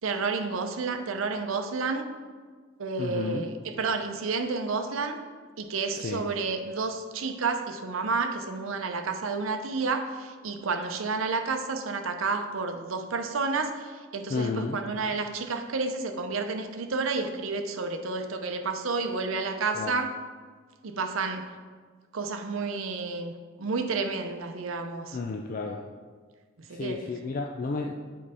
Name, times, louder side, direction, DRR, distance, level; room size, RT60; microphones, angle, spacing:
voice 1, 0.0-2.1 2.8-5.2 5.6-20.1 20.8-21.5 22.1-25.2 26.7-27.0, right 4 dB, 90° right, 6 dB, 0.6 m, -30 dB
voice 2, 3.0-3.5 5.9-6.2 14.3-14.8 19.7-20.0 25.1-25.8 26.7-27.9, left 3 dB, 40° left, 2 dB, 0.4 m, -32 dB
7.4 x 4.6 x 4.2 m, 1.5 s
head